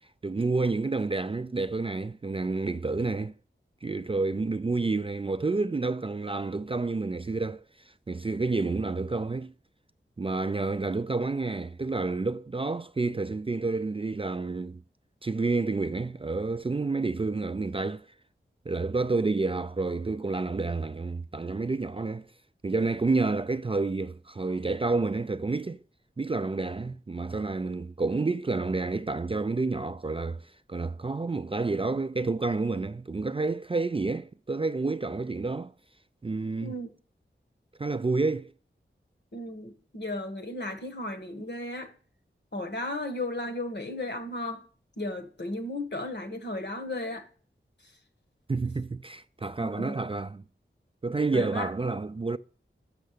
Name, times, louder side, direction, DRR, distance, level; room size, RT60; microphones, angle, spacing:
voice 1, 0.2-3.3 3.8-7.6 8.1-9.5 10.2-14.8 15.2-18.0 18.7-22.3 22.6-25.8 26.2-30.4 30.7-35.7 36.2-36.7 37.8-38.5 48.5-50.4 51.0-52.4, right 3 dB, 25° right, 0.3 m, -29 dB
voice 2, 39.3-41.9 42.5-44.6 45.0-47.3 49.6-50.0 51.3-51.7, left 1 dB, 60° left, 1.4 m, -35 dB
6.6 x 6.5 x 6.6 m
wide cardioid pair, 50°, 21 cm